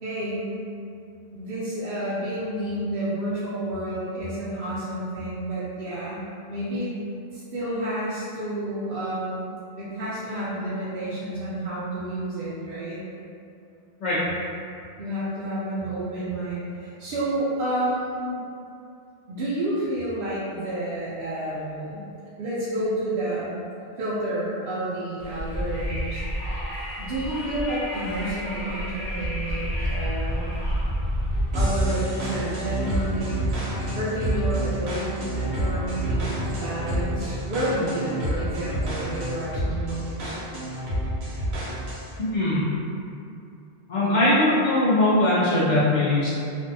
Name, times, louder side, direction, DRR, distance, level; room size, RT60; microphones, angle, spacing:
voice 1, 0.0-0.5 1.3-6.2 6.5-6.9 7.3-9.5 9.8-13.0 15.0-18.4 19.3-22.1 22.4-23.6 24.0-26.2 27.0-30.5 31.5-33.3 34.0-40.4, right 1 dB, 65° right, -10 dB, 0.7 m, -30 dB
Wind, 25.2-31.8, equal, 40° left, 0.9 m, -29 dB
sound 1, 31.5-42.2, right 1 dB, 85° right, 1.0 m, -28 dB
voice 2, 42.2-42.6 43.9-46.3, left 1 dB, 55° left, -9 dB, 0.5 m, -21 dB
2.5 x 2.3 x 2.6 m, 2.5 s
omnidirectional pair, 1.1 m